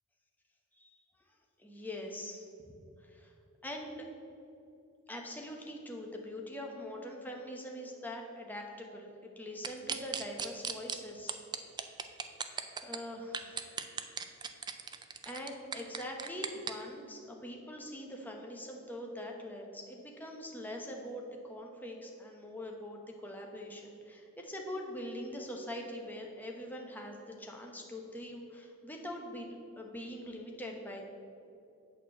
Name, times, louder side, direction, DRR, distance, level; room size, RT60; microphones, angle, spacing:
voice 1, 1.6-2.4 3.0-3.3 3.6-4.0 5.1-9.1 9.4-11.4 12.8-13.8 15.2-31.1, left 1 dB, 10° left, 0 dB, 1.0 m, -43 dB
sound 1, 9.6-11.0 11.3-13.0 13.3-16.7, right 6 dB, 20° right, 0.4 m, -36 dB
8.5 x 4.5 x 7.3 m, 2.7 s
head